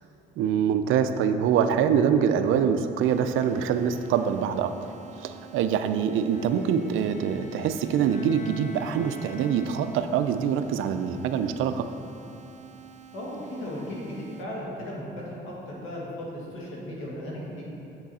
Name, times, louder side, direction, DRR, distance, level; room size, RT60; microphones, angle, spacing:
voice 1, 0.4-4.7 5.2-11.9, right 8 dB, 85° right, 9 dB, 0.4 m, -24 dB
sound 1, 3.0-14.4, right 10 dB, 35° right, 0.5 m, -49 dB
Bowed string instrument, 6.3-10.5, left 4 dB, 40° left, 0.4 m, -46 dB
voice 2, 13.1-17.6, left 1 dB, 90° left, -4 dB, 1.8 m, -36 dB
7.4 x 6.1 x 4.2 m, 2.8 s
cardioid pair, 90°, 20 cm